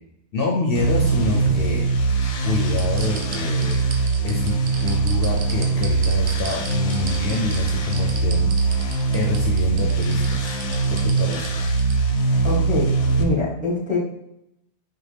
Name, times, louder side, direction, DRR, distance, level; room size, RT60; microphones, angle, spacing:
voice 1, 0.3-1.9 2.4-3.8 4.2-4.6 4.8-8.8 9.1-10.6 10.9-11.5, left 2 dB, 60° left, 0 dB, 0.7 m, -27 dB
sound 1, 0.7-13.2, right 3 dB, 90° left, 0.9 m, -22 dB
sound 2, 1.1-2.2 2.7-11.9 12.3-12.4, right 5 dB, 75° right, 0.9 m, -36 dB
voice 2, 12.4-12.9 13.2-14.0, left 2 dB, 5° right, -6 dB, 0.9 m, -23 dB
4.3 x 2.2 x 3.3 m, 0.81 s
omnidirectional pair, 1.2 m